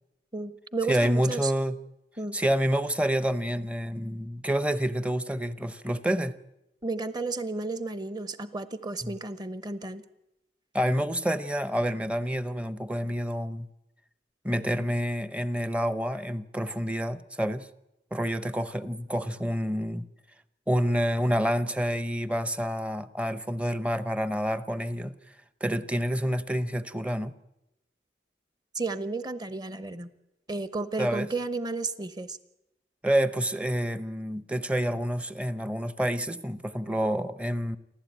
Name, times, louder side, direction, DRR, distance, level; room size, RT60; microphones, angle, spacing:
voice 1, 0.3-1.5 2.2-2.4 6.8-10.0 28.7-30.1 30.5-32.4, right 3 dB, 25° right, 1.0 m, -32 dB
voice 2, 0.9-1.8 2.3-6.4 9.0-9.2 10.7-13.7 14.4-17.7 18.1-20.1 20.7-25.2 25.6-27.3 31.0-31.3 33.0-37.8, equal, 5° right, 0.7 m, -28 dB
28.5 x 12.0 x 9.1 m
head